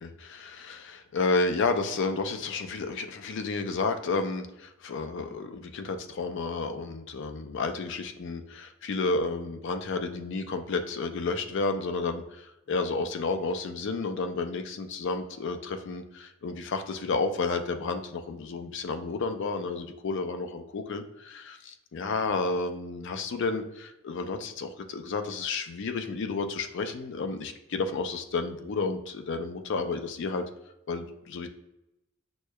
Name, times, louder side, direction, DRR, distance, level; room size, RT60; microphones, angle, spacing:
voice 1, 0.0-30.4 30.9-31.5, left 3 dB, 60° left, 7 dB, 0.4 m, -31 dB
6.2 x 2.1 x 2.2 m, 0.89 s
head